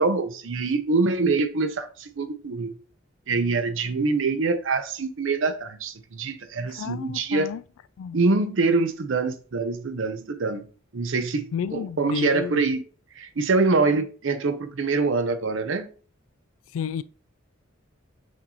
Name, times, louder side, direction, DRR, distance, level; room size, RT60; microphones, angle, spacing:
voice 1, 0.0-2.7 3.3-7.5 8.1-10.7 10.9-12.8 13.2-15.9, right 3 dB, 65° right, 0.6 m, -25 dB
voice 2, 6.7-7.6 8.0-8.2 11.5-12.6 16.7-17.0, left 7 dB, 80° left, 0.3 m, -31 dB
6.0 x 2.6 x 2.9 m
head